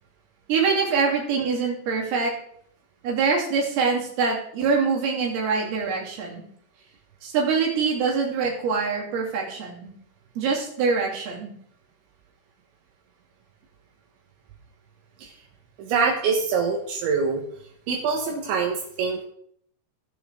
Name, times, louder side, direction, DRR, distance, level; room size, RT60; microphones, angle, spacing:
voice 1, 0.5-2.3 3.0-6.4 7.2-9.9 10.4-11.5, right 5 dB, 60° right, -2 dB, 4.4 m, -24 dB
voice 2, 15.8-17.4 17.9-19.2, right 5 dB, 80° right, 0 dB, 3.7 m, -24 dB
17.0 x 7.2 x 3.7 m, 0.66 s
omnidirectional pair, 5.3 m